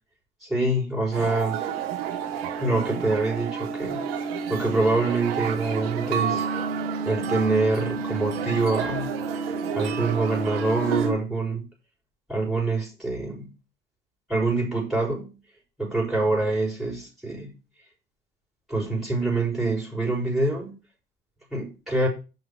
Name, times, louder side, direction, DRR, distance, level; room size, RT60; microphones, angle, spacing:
voice 1, 0.4-1.6 2.6-4.0 4.5-6.5 7.0-9.1 9.7-11.7 12.3-13.5 14.3-15.4 15.8-17.5 18.7-20.8 21.5-22.1, right 2 dB, ahead, 5.8 m, -25 dB
sound 1, 1.1-11.1, right 6 dB, 75° right, 2.9 m, -29 dB
6.7 x 6.0 x 7.4 m
hypercardioid pair, 75°, 29 cm